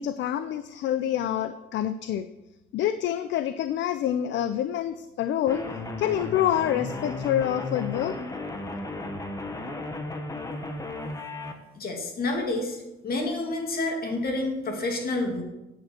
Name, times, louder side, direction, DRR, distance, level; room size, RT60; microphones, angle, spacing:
voice 1, 0.0-2.3 2.7-5.7 6.0-8.1, left 11 dB, 60° left, 12 dB, 0.4 m, -27 dB
sound 1, 5.5-11.5, left 2 dB, 15° left, 1.0 m, -34 dB
voice 2, 11.8-15.4, left 2 dB, 45° left, 2 dB, 2.2 m, -29 dB
9.2 x 7.6 x 4.4 m, 0.99 s
cardioid pair, 120°, 21 cm